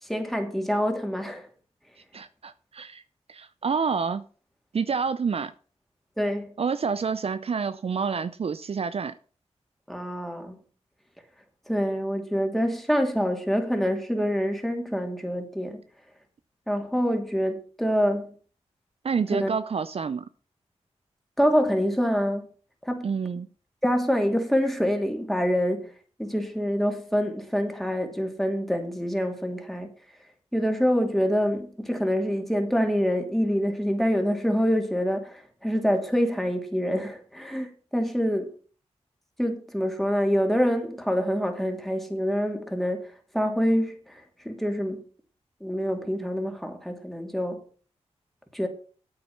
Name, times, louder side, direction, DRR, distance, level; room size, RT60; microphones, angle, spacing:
voice 1, 0.1-1.5 6.2-6.5 9.9-10.6 11.7-15.8 16.7-18.3 19.3-19.5 21.4-22.5 22.8-23.1 23.8-25.9 26.2-29.9 30.5-38.5 39.4-45.0 45.6-47.6 48.5-48.7, equal, ahead, 2.9 m, -26 dB
voice 2, 2.1-3.0 3.3-4.2 4.7-5.5 6.6-9.1 19.0-20.2 23.0-23.5, right 5 dB, 55° right, 0.6 m, -28 dB
8.8 x 8.7 x 5.9 m
cardioid pair, 50°, 12 cm